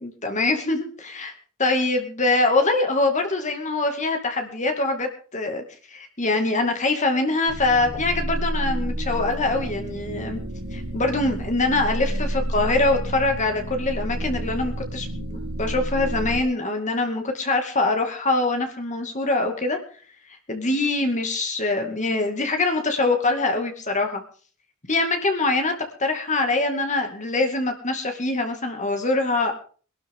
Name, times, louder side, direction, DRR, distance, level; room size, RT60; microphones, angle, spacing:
voice 1, 0.0-1.3 1.6-5.6 5.9-10.4 10.7-19.8 20.5-24.2 24.9-25.7 26.0-29.5, left 2 dB, 35° left, 4 dB, 2.4 m, -24 dB
sound 1, 7.5-16.4, right 1 dB, 80° right, 2.7 m, -30 dB
22.5 x 12.0 x 3.8 m, 0.41 s
head